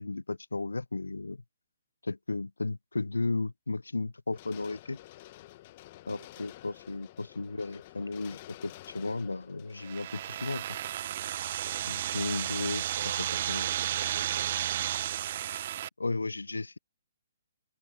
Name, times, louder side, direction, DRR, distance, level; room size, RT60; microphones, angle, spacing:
voice 1, 0.0-1.4 2.0-5.0 6.1-10.6 11.9-12.8 13.2-13.7 15.5-15.6 16.0-16.8, left 3 dB, 85° left, 0.5 m, -34 dB
sound 1, 4.3-11.5 11.8-11.9, left 16 dB, 40° left, 1.3 m, -51 dB
sound 2, 9.8-15.9, right 11 dB, 45° right, 0.4 m, -33 dB
voice 2, 12.1-14.6, right 7 dB, 65° right, 6.2 m, -49 dB
figure-of-eight pair, 135°, 0 cm